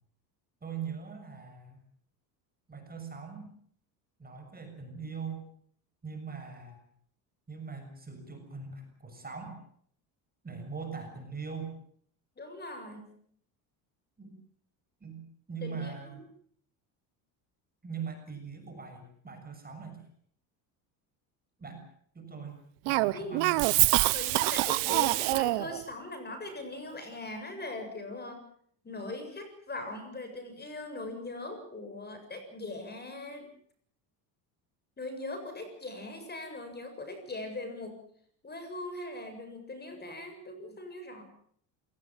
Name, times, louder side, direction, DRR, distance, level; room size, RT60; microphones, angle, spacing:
voice 1, 0.6-1.8 2.7-3.5 4.2-5.5 6.0-6.8 7.5-9.6 10.4-11.7 14.2-14.3 15.0-15.2 15.5-16.2 17.8-20.0 21.6-21.8 22.1-22.6 22.9-23.8, right 6 dB, 20° right, 5 dB, 6.8 m, -41 dB
voice 2, 12.4-13.0 15.6-16.2 23.1-23.4 24.1-28.4 28.8-33.5 35.0-38.0 38.4-41.2, left 2 dB, 20° left, 7 dB, 7.4 m, -40 dB
Cough, 22.9-25.8, right 22 dB, 85° right, 1.2 m, -25 dB
27.5 x 18.5 x 7.5 m, 0.62 s
cardioid pair, 115°, 44 cm